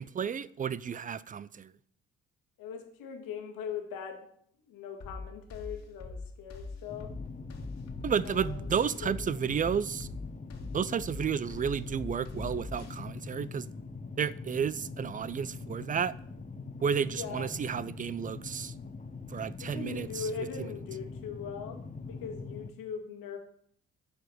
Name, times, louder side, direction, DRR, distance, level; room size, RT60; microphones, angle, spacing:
voice 1, 0.0-1.7 8.0-10.1 10.7-13.7 14.2-16.1 16.8-18.7 19.3-20.3, right 7 dB, 25° right, 0.5 m, -32 dB
voice 2, 2.6-4.3 4.6-7.1 8.2-8.7 9.0-9.8 17.1-17.5 19.6-23.4, left 6 dB, 65° left, 1.9 m, -40 dB
sound 1, 5.0-13.0, left 3 dB, 45° left, 1.9 m, -42 dB
sound 2, 6.9-22.7, left 4 dB, 20° left, 0.9 m, -43 dB
10.5 x 4.8 x 6.2 m
hypercardioid pair, 50°, 36 cm